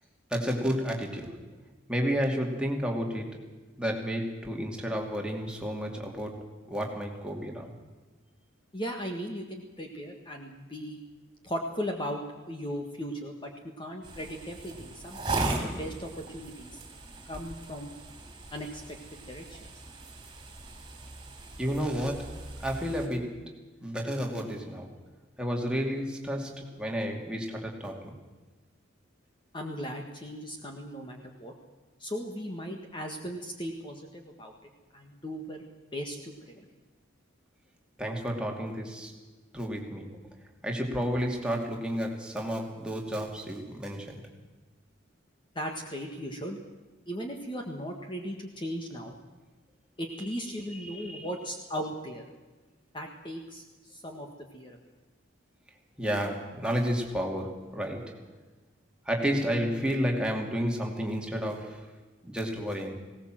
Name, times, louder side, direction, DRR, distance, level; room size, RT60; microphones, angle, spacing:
voice 1, 0.3-1.5 1.9-7.7 21.6-24.9 25.4-28.1 38.0-39.2 39.5-40.3 40.6-44.3 50.7-51.3 56.0-58.3 59.0-61.9 62.2-63.0, equal, 5° right, 0 dB, 2.6 m, -31 dB
voice 2, 8.7-11.0 11.4-13.5 13.8-16.8 17.2-17.9 18.5-19.6 29.5-31.5 32.0-34.5 34.9-35.7 35.9-36.7 45.5-46.6 47.1-49.1 50.0-52.3 52.9-54.8, equal, 25° left, 2 dB, 1.7 m, -37 dB
sound 1, 14.0-23.1, right 2 dB, 20° right, 3.4 m, -38 dB
19.5 x 18.0 x 7.7 m, 1.2 s
head